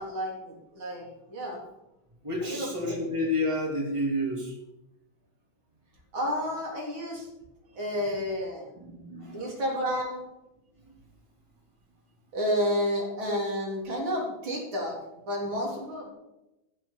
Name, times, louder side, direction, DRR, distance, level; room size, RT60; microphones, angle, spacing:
voice 1, 0.0-1.6 2.4-3.0 6.1-7.3 7.7-8.7 9.3-10.2 12.3-15.0 15.3-16.1, equal, 90° right, -2 dB, 4.5 m, -31 dB
voice 2, 2.2-4.5 8.8-9.5 10.8-10.9, left 1 dB, 15° right, -1 dB, 3.1 m, -30 dB
14.0 x 7.3 x 6.9 m, 0.93 s
omnidirectional pair, 2.2 m